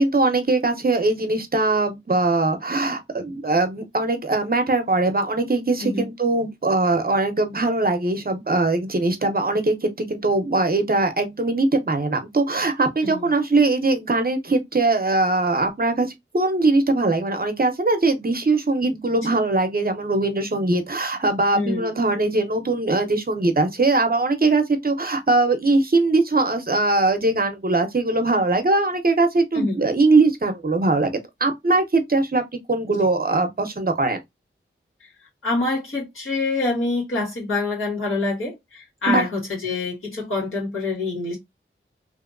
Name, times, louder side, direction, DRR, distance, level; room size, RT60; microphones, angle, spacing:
voice 1, 0.0-16.1 16.3-31.1 31.4-32.4 32.7-34.2 39.1-39.3, right 2 dB, 45° right, 0.7 m, -21 dB
voice 2, 5.8-6.1 13.0-13.3 21.5-21.9 29.5-29.8 32.9-33.1 35.0-35.1 35.4-41.4, left 3 dB, 80° left, 1.9 m, -26 dB
2.9 x 2.7 x 2.4 m
wide cardioid pair, 65°, 21 cm